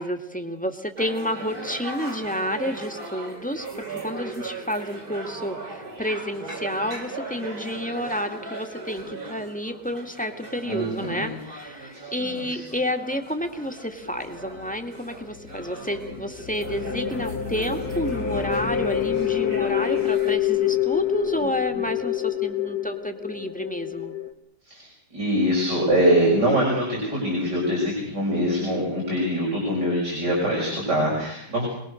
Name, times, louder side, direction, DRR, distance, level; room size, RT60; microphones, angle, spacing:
voice 1, 0.0-24.1 28.4-28.6, equal, 5° left, 5 dB, 2.1 m, -30 dB
sound 1, 1.0-20.3, right 3 dB, 60° right, 4.8 m, -39 dB
voice 2, 10.6-11.3 11.9-12.6 21.7-21.8 24.6-31.7, equal, 80° right, -3 dB, 7.6 m, -24 dB
sound 2, 14.0-24.3, left 11 dB, 65° left, 2.1 m, -27 dB
27.0 x 20.5 x 6.6 m, 0.77 s
omnidirectional pair, 1.8 m